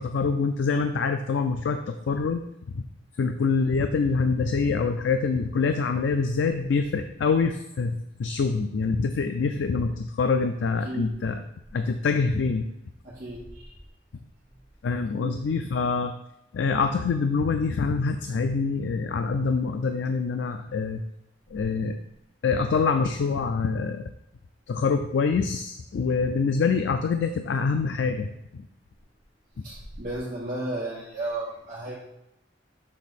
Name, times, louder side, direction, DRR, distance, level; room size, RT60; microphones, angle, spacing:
voice 1, 0.0-2.8 3.2-11.4 11.7-12.6 14.8-16.1 16.5-21.0 21.5-22.0 22.4-24.1 24.7-28.6, left 4 dB, 80° left, 7 dB, 0.4 m, -25 dB
voice 2, 13.0-13.7 15.2-15.3 29.6-32.0, right 2 dB, 50° right, -8 dB, 1.3 m, -34 dB
6.5 x 3.5 x 4.0 m, 0.86 s
head